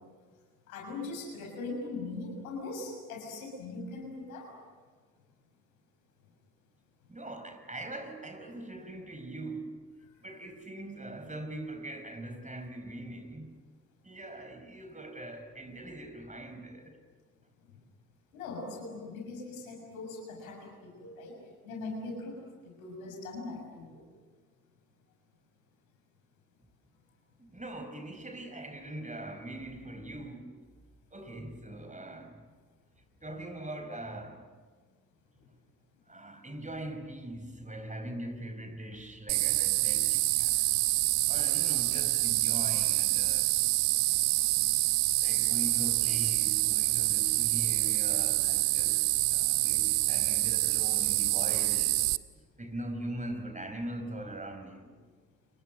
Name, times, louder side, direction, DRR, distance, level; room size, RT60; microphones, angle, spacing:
voice 1, 0.7-4.5 18.3-21.3 21.6-24.0, left 3 dB, 80° left, 6.8 m, -40 dB
voice 2, 7.1-9.8 10.2-13.6 14.0-17.0 27.4-30.8 31.1-32.4 33.2-34.5 36.1-40.6 41.3-43.6 45.2-52.0 52.6-55.0, right 1 dB, 15° right, 4.9 m, -42 dB
sound 1, 39.3-52.2, right 25 dB, 70° right, 0.8 m, -27 dB
30.0 x 30.0 x 6.6 m
figure-of-eight pair, 45°, 42 cm